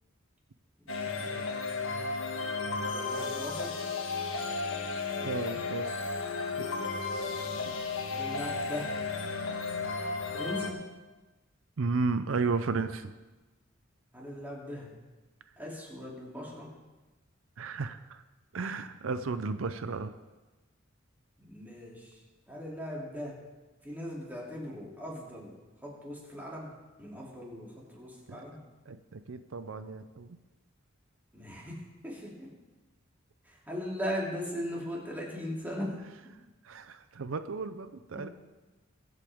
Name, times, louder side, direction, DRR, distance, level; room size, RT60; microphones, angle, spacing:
sound 1, 0.9-10.7, left 4 dB, 80° left, 1.5 m, -34 dB
voice 1, 0.9-1.6 2.7-3.8 7.4-7.7 8.1-9.0 10.3-10.9 14.1-15.0 15.6-16.7 21.4-23.4 23.8-25.6 25.8-26.7 27.0-28.6 31.3-32.5 33.4-36.0 38.1-38.3, equal, 10° right, -4 dB, 2.9 m, -39 dB
voice 2, 5.2-6.0 6.6-6.7 7.7-7.8 11.8-13.1 17.6-18.2 18.5-20.1 28.3-28.4 28.9-30.4 36.6-38.3, right 4 dB, 90° right, 11 dB, 0.6 m, -34 dB
22.5 x 8.2 x 3.6 m, 1.2 s
head